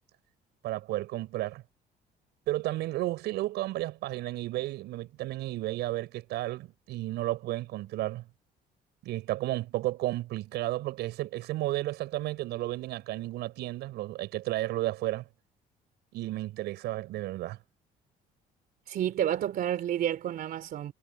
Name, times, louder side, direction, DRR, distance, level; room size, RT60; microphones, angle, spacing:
voice 1, 0.6-1.6 2.5-8.2 9.0-15.2 16.1-17.6, right 16 dB, 80° right, 6.7 m, -33 dB
voice 2, 18.9-20.9, right 11 dB, 60° right, 3.2 m, -30 dB
cardioid pair, 110°, 17 cm